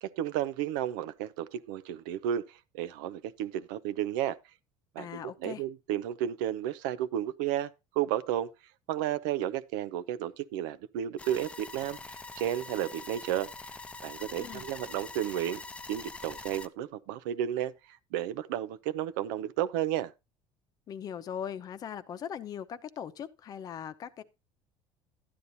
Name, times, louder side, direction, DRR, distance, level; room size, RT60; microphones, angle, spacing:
voice 1, 0.0-4.4 4.9-8.5 8.9-13.5 14.0-15.6 15.9-20.1, right 11 dB, 90° right, 0.6 m, -33 dB
voice 2, 5.0-5.6 14.4-14.7 20.9-24.2, left 8 dB, 40° left, 0.8 m, -40 dB
sound 1, 11.2-16.7, left 3 dB, 10° left, 0.5 m, -44 dB
12.0 x 9.7 x 2.7 m
cardioid pair, 120°, 10 cm